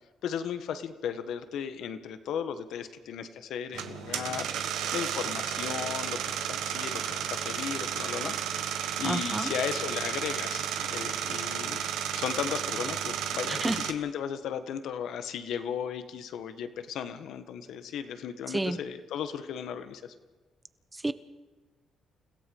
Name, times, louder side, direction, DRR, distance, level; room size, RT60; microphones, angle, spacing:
voice 1, 0.2-4.5 4.9-8.4 9.0-11.8 12.2-20.1, left 8 dB, 80° left, 9 dB, 1.6 m, -35 dB
sound 1, 3.7-13.9, right 9 dB, 90° right, 1.5 m, -33 dB
voice 2, 9.0-9.5 13.5-13.8 18.5-18.8 20.9-21.1, right 2 dB, 15° right, 13 dB, 1.1 m, -30 dB
29.5 x 16.5 x 5.6 m, 1.3 s
cardioid pair, 90°, 0 cm